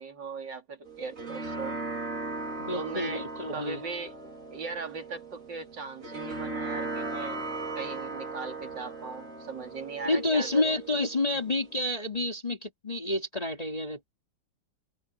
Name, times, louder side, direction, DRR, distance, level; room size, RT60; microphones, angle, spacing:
voice 1, 0.0-1.8 2.7-3.2 3.5-4.2 4.5-7.4 7.8-10.8, right 4 dB, 65° right, 3.5 m, -38 dB
sound 1, 0.9-11.8, right 3 dB, 40° right, 3.6 m, -38 dB
voice 2, 2.6-3.8 10.0-14.1, left 2 dB, 20° left, 3.0 m, -29 dB
omnidirectional pair, 2.1 m